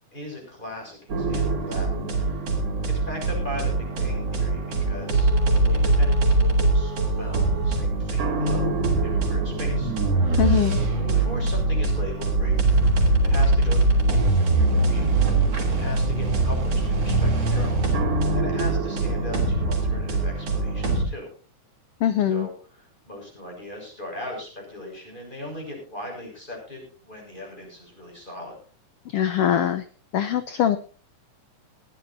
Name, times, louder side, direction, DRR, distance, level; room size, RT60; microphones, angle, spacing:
voice 1, 0.1-1.9 2.2-2.4 2.9-5.3 5.7-9.9 11.0-12.9 13.2-21.3 22.3-28.6, left 1 dB, 15° left, 0 dB, 6.6 m, -39 dB
sound 1, 1.1-21.1, right 2 dB, 55° right, 4.0 m, -22 dB
voice 2, 10.4-10.8 22.0-22.5 29.1-29.8 30.1-30.8, left 10 dB, 85° left, 10 dB, 1.3 m, -22 dB
19.5 x 14.0 x 2.7 m, 0.40 s
omnidirectional pair, 3.6 m